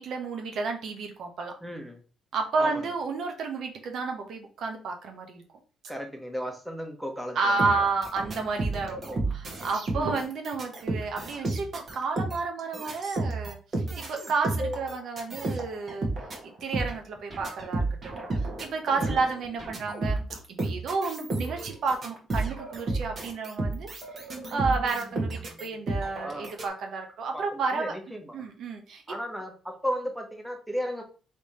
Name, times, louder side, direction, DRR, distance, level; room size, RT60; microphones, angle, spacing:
voice 1, 0.0-1.5 2.3-5.4 7.3-16.1 16.4-20.2 20.6-24.2 24.5-27.9 28.3-29.0, right 4 dB, 70° right, 4 dB, 0.9 m, -31 dB
voice 2, 1.6-2.0 2.6-2.8 5.9-7.9 9.0-9.2 9.9-10.2 19.0-19.2 26.2-26.5 27.3-27.5 27.7-28.4 29.1-31.0, equal, 5° right, 3 dB, 1.2 m, -35 dB
sound 1, 7.6-26.7, right 2 dB, 45° right, 1.5 m, -32 dB
3.4 x 3.4 x 4.2 m, 0.37 s
cardioid pair, 90°, 0 cm